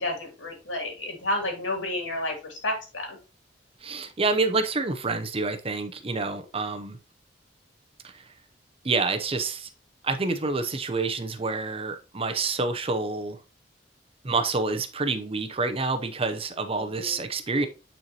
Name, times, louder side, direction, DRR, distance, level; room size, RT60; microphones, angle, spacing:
voice 1, 0.0-3.2 6.2-6.3 16.8-17.2, left 1 dB, 80° left, 2.8 m, -31 dB
voice 2, 3.8-7.0 8.0-8.3 8.8-9.7 10.0-13.4 14.2-17.7, right 3 dB, 30° right, 0.7 m, -28 dB
9.5 x 4.4 x 2.9 m
head